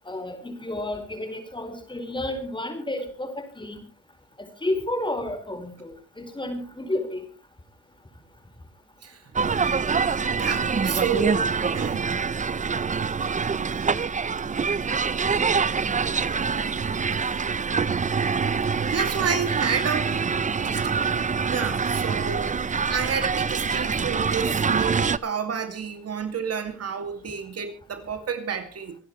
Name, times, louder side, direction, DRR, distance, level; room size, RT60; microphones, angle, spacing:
voice 1, 0.0-3.8 4.4-7.3, left 1 dB, 15° left, 4.9 m, -31 dB
sound 1, 9.3-25.2, right 5 dB, 25° right, 0.7 m, -25 dB
voice 2, 10.3-11.4 11.7-12.1 17.1-17.4 18.8-20.2 20.6-20.9 21.5-22.6 22.9-29.0, right 6 dB, 50° right, 2.5 m, -30 dB
26.0 x 11.0 x 3.2 m
cardioid pair, 85°, 31 cm